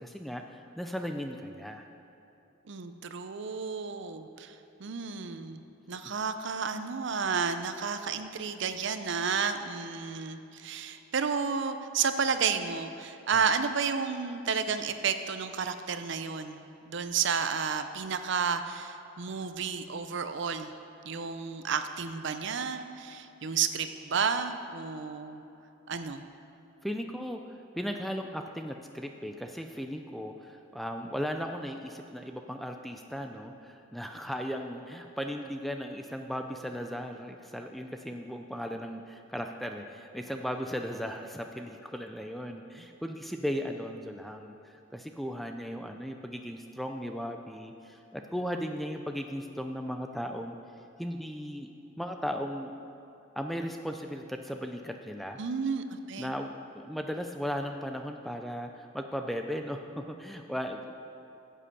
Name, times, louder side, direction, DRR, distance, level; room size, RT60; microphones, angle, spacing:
voice 1, 0.0-1.9 26.8-50.6 51.0-51.7 52.0-52.7 53.4-55.4 56.2-61.0, equal, ahead, 4 dB, 0.3 m, -37 dB
voice 2, 2.7-5.6 5.9-20.7 21.0-25.4 25.9-26.2 55.4-56.3, right 6 dB, 55° right, 9 dB, 0.5 m, -31 dB
9.8 x 7.6 x 6.7 m, 2.8 s
head